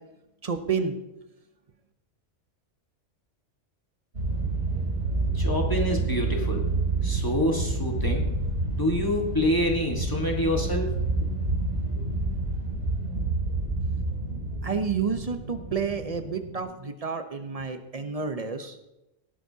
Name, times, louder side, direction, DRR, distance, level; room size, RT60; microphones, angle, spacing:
voice 1, 0.4-0.9 14.6-18.8, right 5 dB, 35° right, 8 dB, 0.8 m, -30 dB
sound 1, 4.1-16.6, right 2 dB, 70° right, 2.9 m, -28 dB
voice 2, 5.3-6.6 7.0-8.2 8.7-10.9, left 1 dB, 15° left, 0 dB, 1.6 m, -27 dB
18.0 x 11.0 x 2.8 m, 0.94 s
omnidirectional pair, 1.3 m